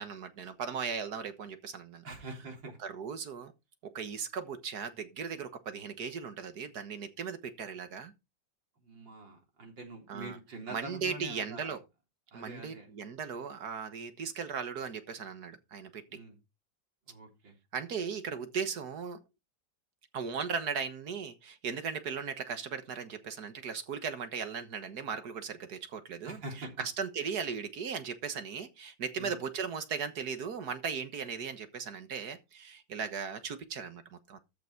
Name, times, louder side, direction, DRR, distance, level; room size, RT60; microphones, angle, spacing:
voice 1, 0.0-2.0 2.8-3.5 3.8-8.1 10.1-10.4 10.7-11.8 12.3-16.2 17.7-19.2 20.1-34.4, right 6 dB, 60° right, 1.9 m, -37 dB
voice 2, 2.0-2.8 8.8-11.8 12.3-12.9 16.1-16.4 17.1-17.6 26.3-26.7 29.2-29.4, right 2 dB, 80° right, 4.2 m, -45 dB
13.5 x 6.0 x 4.5 m
omnidirectional pair, 2.0 m